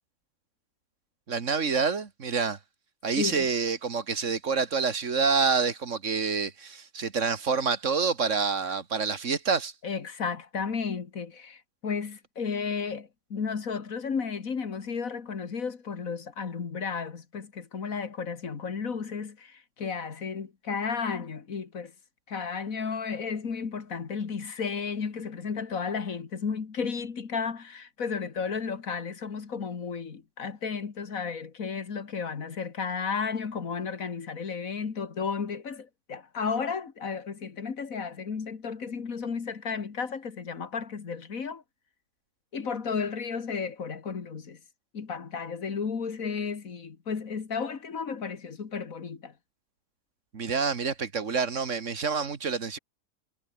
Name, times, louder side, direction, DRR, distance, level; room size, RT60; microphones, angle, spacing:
voice 1, 1.3-2.6 3.0-9.7 50.3-52.8, right 5 dB, 60° right, 2.1 m, -27 dB
voice 2, 3.2-3.5 9.8-21.9 22.3-41.6 42.5-44.6 44.9-49.3, left 5 dB, 80° left, 2.3 m, -33 dB
omnidirectional pair, 1.4 m